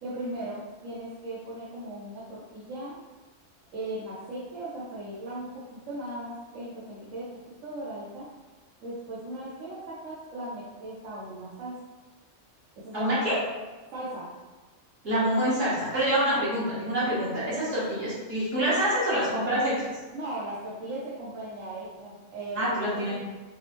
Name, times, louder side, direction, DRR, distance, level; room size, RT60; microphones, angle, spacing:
voice 1, 0.0-3.0 3.7-7.3 7.6-8.3 8.8-11.7 12.8-13.3 13.9-14.3 16.2-16.4 20.1-22.6 22.9-23.1, right 1 dB, 80° right, -7 dB, 1.2 m, -38 dB
voice 2, 12.9-13.4 15.0-19.9 22.6-23.2, right 1 dB, 65° right, -9 dB, 1.9 m, -26 dB
6.2 x 2.1 x 3.0 m, 1.2 s
omnidirectional pair, 1.3 m